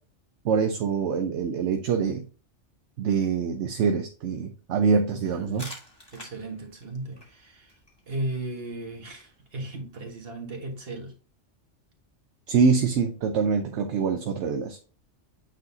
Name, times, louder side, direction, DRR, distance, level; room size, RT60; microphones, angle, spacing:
voice 1, 0.4-2.3 3.0-5.7 12.5-14.8, right 5 dB, 75° right, 1.0 m, -25 dB
voice 2, 5.1-5.7 6.1-7.8 8.1-11.1, right 2 dB, 55° right, 1.8 m, -36 dB
sound 1, 5.3-10.8, equal, 20° left, 1.9 m, -50 dB
8.8 x 4.0 x 2.8 m
omnidirectional pair, 1.2 m